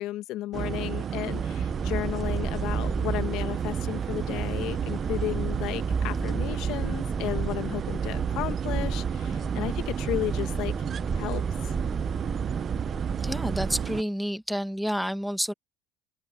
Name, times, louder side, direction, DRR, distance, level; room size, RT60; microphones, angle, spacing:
voice 1, 0.0-10.7 11.1-11.7, left 15 dB, 60° left, 1.6 m, -33 dB
sound 1, 0.5-14.0, right 8 dB, 35° right, 0.5 m, -32 dB
sound 2, 1.3-13.8, right 4 dB, 15° right, 1.3 m, -33 dB
voice 2, 13.2-15.5, equal, ahead, 1.1 m, -29 dB
open air
supercardioid pair, 120°, 0 cm